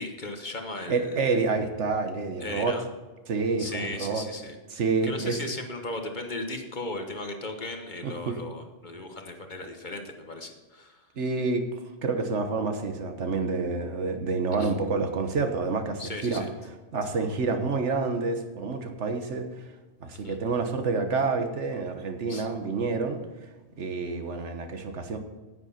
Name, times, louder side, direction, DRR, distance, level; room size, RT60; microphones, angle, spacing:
voice 1, 0.0-1.3 2.4-2.8 3.6-4.6 5.0-11.1 14.5-14.7 16.0-16.5 20.1-20.4 22.3-22.5, left 2 dB, 40° left, 5 dB, 1.2 m, -37 dB
voice 2, 0.9-2.8 3.3-4.3 4.7-5.4 8.0-8.4 11.2-11.6 12.0-16.4 16.9-19.5 20.0-23.2 23.8-25.2, right 4 dB, 75° right, 6 dB, 1.4 m, -28 dB
9.7 x 9.3 x 5.6 m, 1.2 s
omnidirectional pair, 1.2 m